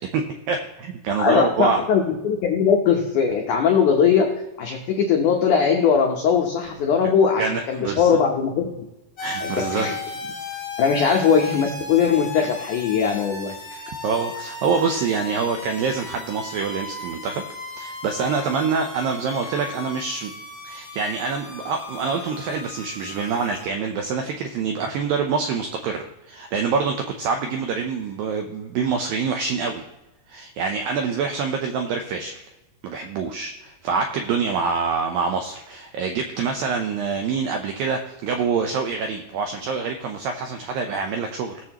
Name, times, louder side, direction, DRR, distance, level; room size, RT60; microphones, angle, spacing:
voice 1, 0.1-1.8 7.4-8.1 9.2-10.0 14.0-17.4 17.7-20.3 20.6-29.8 30.3-32.5 32.8-41.5, right 5 dB, 90° right, 4 dB, 2.0 m, -26 dB
voice 2, 1.2-4.3 4.6-8.6 9.4-9.9 10.8-13.9, left 6 dB, 90° left, 2 dB, 1.7 m, -20 dB
sound 1, 9.2-23.6, left 4 dB, 25° left, 2.8 m, -36 dB
18.5 x 7.3 x 3.0 m, 0.97 s
omnidirectional pair, 5.1 m